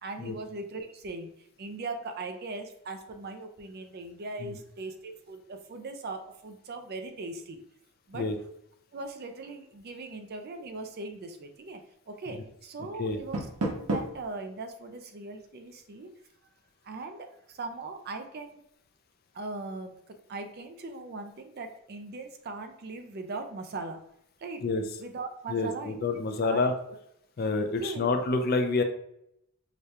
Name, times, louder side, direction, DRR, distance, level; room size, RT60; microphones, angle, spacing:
voice 1, 0.0-7.6 8.1-8.3 8.9-11.8 12.1-13.4 13.7-16.1 16.8-18.6 19.3-24.0 24.4-24.7 25.0-26.1 26.4-26.6 27.7-28.0, right 3 dB, 45° right, 6 dB, 0.4 m, -39 dB
Door, 13.1-14.3, right 2 dB, 90° right, 0.9 m, -32 dB
voice 2, 25.5-26.7 27.4-28.8, left 3 dB, 45° left, 6 dB, 0.4 m, -28 dB
4.9 x 2.3 x 2.8 m, 0.75 s
head